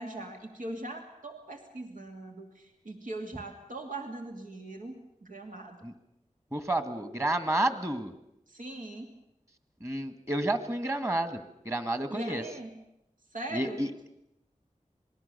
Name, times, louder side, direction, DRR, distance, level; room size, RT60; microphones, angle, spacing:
voice 1, 0.0-5.8 8.5-9.1 12.1-12.7 13.3-13.8, right 2 dB, 85° right, 2 dB, 2.6 m, -41 dB
voice 2, 6.5-8.1 9.8-12.4 13.5-13.9, right 1 dB, 20° right, 10 dB, 2.0 m, -30 dB
26.5 x 20.0 x 7.0 m, 0.81 s
wide cardioid pair, 70°, 13 cm